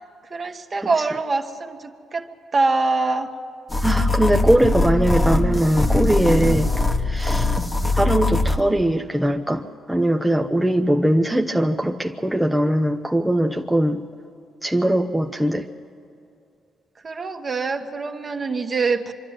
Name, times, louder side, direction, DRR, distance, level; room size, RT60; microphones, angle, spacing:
voice 1, 0.3-2.3 2.5-3.3 17.0-19.1, right 3 dB, 35° right, 5 dB, 1.4 m, -24 dB
sound 1, 3.7-8.6, left 2 dB, 15° left, 1.1 m, -21 dB
voice 2, 3.8-6.7 7.0-7.5 8.0-9.6 9.9-14.0 14.6-15.7, right 1 dB, 5° right, 2 dB, 0.7 m, -20 dB
24.5 x 12.5 x 9.1 m, 2.4 s
cardioid pair, 90°, 0 cm